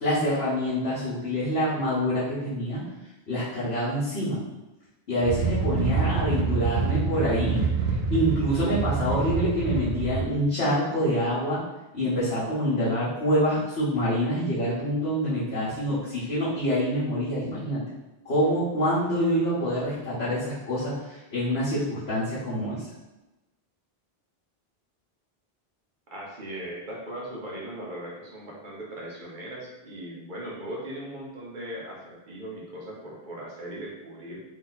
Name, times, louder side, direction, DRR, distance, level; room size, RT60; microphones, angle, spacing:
voice 1, 0.0-2.8 3.3-4.4 5.1-7.6 8.1-11.6 11.9-17.8 18.2-22.8, equal, 80° left, -12 dB, 1.5 m, -26 dB
sound 1, 5.2-10.3, right 5 dB, 80° right, 0.9 m, -26 dB
voice 2, 26.1-34.4, right 1 dB, 50° right, -3 dB, 1.2 m, -38 dB
3.5 x 2.8 x 3.9 m, 1.0 s
omnidirectional pair, 1.0 m